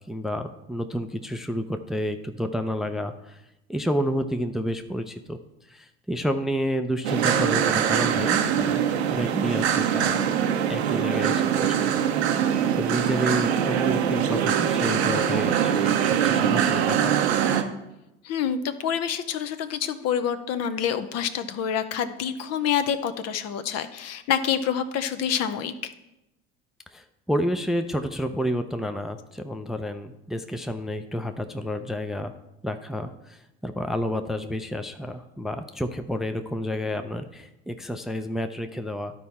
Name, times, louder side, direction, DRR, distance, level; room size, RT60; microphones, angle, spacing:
voice 1, 0.1-3.4 3.7-5.4 5.7-10.2 10.6-11.9 12.8-17.3 26.9-32.3 32.6-39.1, equal, ahead, 7 dB, 0.5 m, -30 dB
sound 1, 7.0-17.6, right 8 dB, 90° right, 0.8 m, -23 dB
voice 2, 18.2-25.9, left 8 dB, 50° left, 10 dB, 0.8 m, -27 dB
11.5 x 4.6 x 4.2 m, 0.92 s
hypercardioid pair, 80°, 31 cm